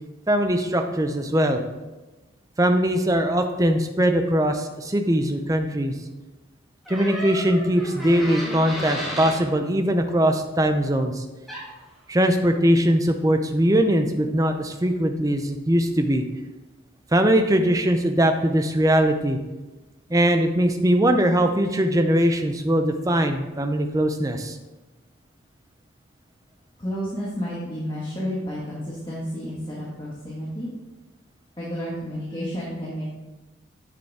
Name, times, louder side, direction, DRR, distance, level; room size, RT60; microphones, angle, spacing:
voice 1, 0.3-1.6 2.6-5.9 6.9-11.2 12.1-16.3 17.1-19.4 20.1-24.6, right 1 dB, 15° right, 6 dB, 0.6 m, -21 dB
sound 1, 6.9-9.4 11.5-11.7, equal, ahead, 1.9 m, -33 dB
voice 2, 26.8-30.7 31.6-33.1, equal, 25° left, -7 dB, 1.5 m, -31 dB
9.6 x 6.7 x 3.5 m, 1.1 s
head